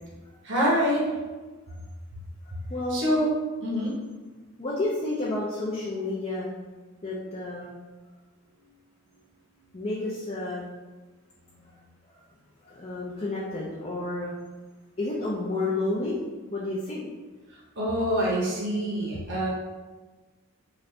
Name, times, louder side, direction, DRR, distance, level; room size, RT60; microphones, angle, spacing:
voice 1, 0.4-1.1 2.9-3.3 3.6-3.9 17.8-19.5, equal, 55° right, -5 dB, 1.0 m, -25 dB
voice 2, 2.7-3.1 4.6-6.5 7.0-7.8 9.7-10.6 12.1-12.2 12.6-14.4 15.0-16.2 16.5-17.0, left 2 dB, 30° left, -6 dB, 0.5 m, -30 dB
4.0 x 2.5 x 3.3 m, 1.3 s
head